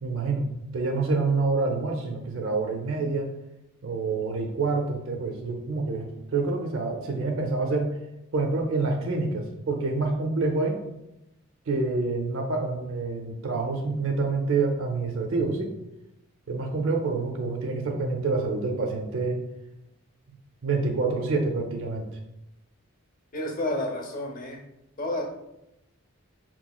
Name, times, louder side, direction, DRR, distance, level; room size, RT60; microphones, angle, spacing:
voice 1, 0.0-0.4 0.7-3.3 3.8-7.9 8.3-10.8 11.7-15.7 16.5-19.4 20.6-22.0, right 3 dB, 65° right, 2 dB, 0.5 m, -27 dB
voice 2, 23.3-24.6 25.0-25.2, left 1 dB, 40° left, 1 dB, 0.7 m, -30 dB
6.0 x 3.0 x 2.2 m, 0.87 s
head